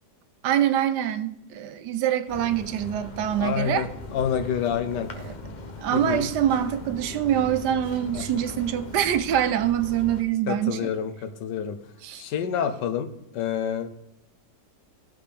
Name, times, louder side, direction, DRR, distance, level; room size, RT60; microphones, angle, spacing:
voice 1, 0.4-3.9 5.2-5.3 5.8-10.9 12.0-12.2, right 10 dB, 85° right, 1.2 m, -25 dB
sound 1, 2.3-10.2, left 2 dB, 40° left, 0.7 m, -39 dB
voice 2, 3.4-5.1 5.9-6.2 8.1-8.3 10.5-11.8 12.2-13.1 13.3-13.9, left 8 dB, 90° left, 1.4 m, -28 dB
15.5 x 5.7 x 3.4 m
omnidirectional pair, 1.8 m